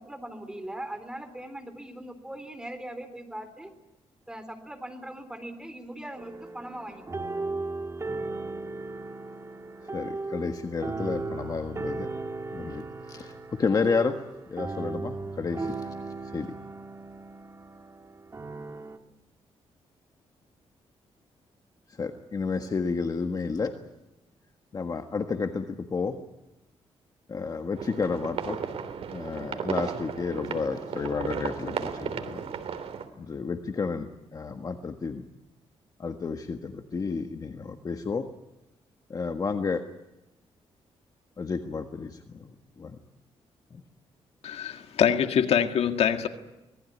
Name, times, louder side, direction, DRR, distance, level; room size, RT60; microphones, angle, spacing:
voice 1, 0.0-3.7 4.3-7.6, right 1 dB, 5° right, 8 dB, 3.8 m, -40 dB
sound 1, 6.2-19.0, right 3 dB, 25° right, 1.7 m, -36 dB
voice 2, 9.9-12.1 12.5-14.2 14.5-15.8 16.3-16.5 22.0-23.7 24.7-26.2 27.3-28.6 29.1-32.4 33.2-35.2 36.0-38.3 39.1-39.8 41.4-42.5 42.8-43.0 43.7-43.8, left 4 dB, 35° left, 6 dB, 1.5 m, -31 dB
sound 2, 27.8-33.1, right 7 dB, 70° right, 3.2 m, -34 dB
voice 3, 44.4-46.3, left 8 dB, 75° left, 7 dB, 1.9 m, -24 dB
25.0 x 19.5 x 9.8 m, 0.99 s
cardioid pair, 130°, 11 cm